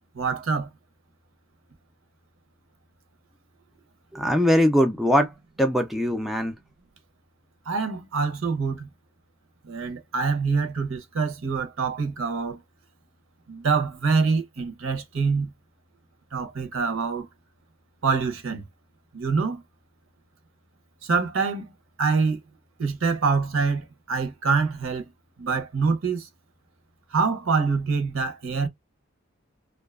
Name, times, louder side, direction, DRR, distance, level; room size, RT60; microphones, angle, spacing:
voice 1, 0.1-0.7 7.7-8.9 9.6-12.6 13.5-15.5 16.3-17.3 18.0-18.6 19.1-19.6 21.0-21.7 22.0-22.4 22.8-25.1 25.4-26.3 27.1-28.7, right 4 dB, 75° right, 0.7 m, -25 dB
voice 2, 4.1-5.3 5.6-6.5, equal, ahead, 0.3 m, -21 dB
2.5 x 2.3 x 2.3 m
head